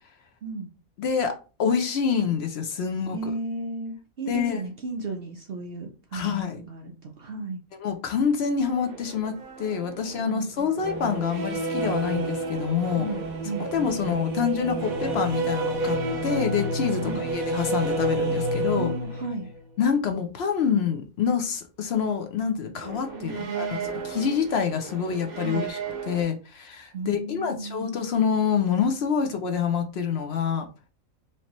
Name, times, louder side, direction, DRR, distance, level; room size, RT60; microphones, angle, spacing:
voice 1, 1.0-3.2 4.3-4.6 6.1-6.6 7.8-13.1 13.7-18.9 19.8-25.8 26.1-30.7, left 7 dB, 60° left, 0.7 m, -26 dB
voice 2, 3.1-7.6 10.3-10.8 12.9-13.7 17.0-17.2 18.8-19.5 23.1-24.0 25.4-25.7 26.9-27.9, right 3 dB, 60° right, 0.6 m, -34 dB
sound 1, 8.6-19.6 22.8-26.2, right 2 dB, 75° right, 1.3 m, -30 dB
4.4 x 2.8 x 2.9 m
omnidirectional pair, 1.5 m